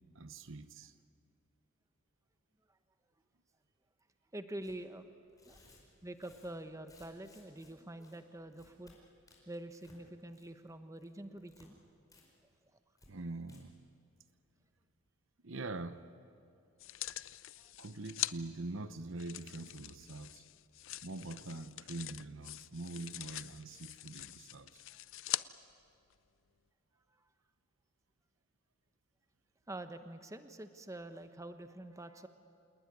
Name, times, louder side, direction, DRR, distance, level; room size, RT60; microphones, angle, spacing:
voice 1, 0.1-0.9 13.1-13.8 15.4-16.0 17.8-20.4 21.0-24.8, right 2 dB, 60° right, 1.0 m, -44 dB
voice 2, 4.3-5.1 5.5-5.6 6.0-9.0 9.5-11.8 17.6-17.7 24.9-25.0 27.1-27.3 29.7-32.3, right 1 dB, 15° right, 1.0 m, -46 dB
Tearing, 4.6-4.8 5.3-7.7 8.0-8.2 8.5-8.9 9.3-10.0 10.3-10.7 11.0-11.7 12.1-12.2 12.5-12.6 13.0-13.1 13.4-13.6, left 2 dB, 15° left, 5.0 m, -63 dB
Measure Tape, 16.8-18.3 19.2-25.4 26.1-26.2, left 15 dB, 60° left, 0.5 m, -43 dB
27.5 x 19.0 x 9.8 m
head